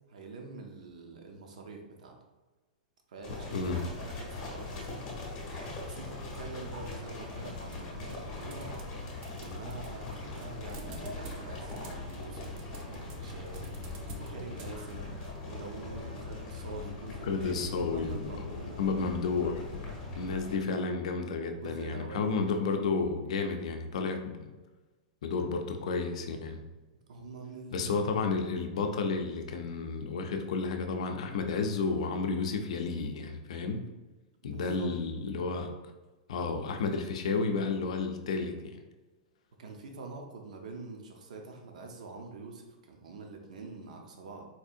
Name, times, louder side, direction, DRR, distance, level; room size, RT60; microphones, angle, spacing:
voice 1, 0.1-2.2 3.1-5.0 5.8-8.7 9.3-13.7 14.2-15.1 15.4-18.8 20.5-20.8 21.4-22.3 22.8-22.9 27.1-28.2 34.4-34.9 39.6-44.5, right 3 dB, 80° right, 2 dB, 0.7 m, -45 dB
sound 1, 3.2-20.6, left 3 dB, 25° left, 0.8 m, -41 dB
sound 2, 7.7-9.0 9.2-15.3, right 1 dB, 25° right, 0.4 m, -48 dB
voice 2, 17.2-19.9 20.1-24.5 25.2-26.6 27.7-33.8 34.4-35.7 36.3-38.8, left 4 dB, 60° left, 5 dB, 0.4 m, -32 dB
4.2 x 2.6 x 2.4 m, 1.2 s
supercardioid pair, 175°, 4 cm